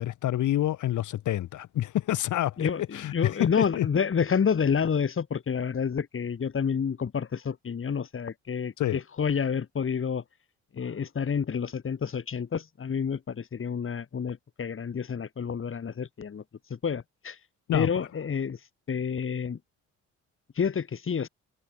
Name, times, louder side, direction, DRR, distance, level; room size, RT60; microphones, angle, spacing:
voice 1, 0.0-3.9 8.8-9.0 17.7-17.9, left 13 dB, 75° left, 2.6 m, -28 dB
voice 2, 2.6-10.2 10.7-16.4 16.7-17.4 17.7-18.6 18.9-19.6 20.5-21.3, left 6 dB, 45° left, 5.1 m, -29 dB
cardioid pair, 90°, 30 cm